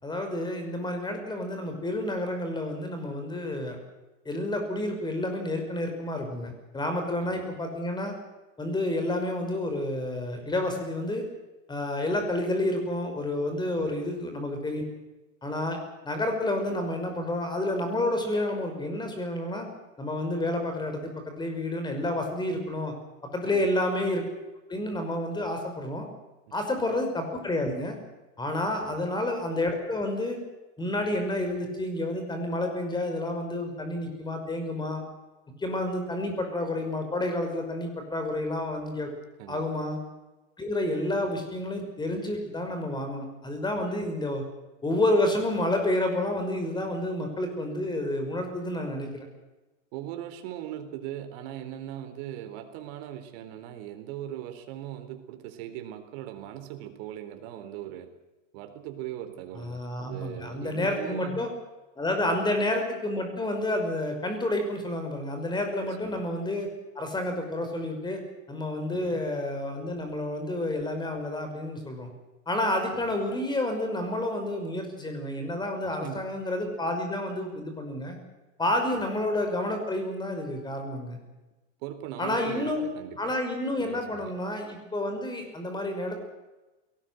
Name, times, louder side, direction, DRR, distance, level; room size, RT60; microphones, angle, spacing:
voice 1, 0.0-3.8 4.3-8.2 8.6-11.2 11.7-14.8 15.4-15.8 16.0-19.7 20.0-22.9 23.3-24.2 24.7-26.1 26.5-28.0 28.4-30.4 30.8-35.0 35.6-39.1 39.5-40.0 40.6-44.4 44.8-49.3 59.6-61.5 62.0-66.7 67.0-68.2 68.5-72.1 72.5-78.2 78.6-81.2 82.2-82.8 83.2-86.2, left 1 dB, 10° left, 5 dB, 5.7 m, -29 dB
voice 2, 49.9-58.1 58.5-61.5 62.2-62.6 65.8-66.2 68.9-69.3 72.9-73.2 75.8-76.3 78.9-79.1 81.8-83.3 83.7-84.3, right 12 dB, 55° right, 8 dB, 3.8 m, -40 dB
22.0 x 19.0 x 7.9 m, 1.1 s
hypercardioid pair, 125°, 38 cm